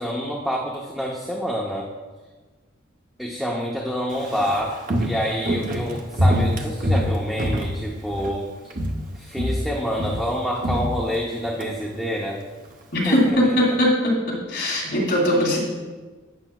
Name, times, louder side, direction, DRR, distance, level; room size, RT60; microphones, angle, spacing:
voice 1, 0.0-1.9 3.2-8.7 9.1-12.4 13.0-13.6, equal, ahead, -3 dB, 0.6 m, -27 dB
Walk footsteps, 4.1-8.4 8.7-9.1 9.4-11.7 12.0-12.1, equal, 40° right, 0.7 m, -25 dB
voice 2, 12.9-14.1 14.5-15.6, left 1 dB, 55° left, -4 dB, 2.7 m, -20 dB
11.5 x 9.1 x 2.3 m, 1.3 s
head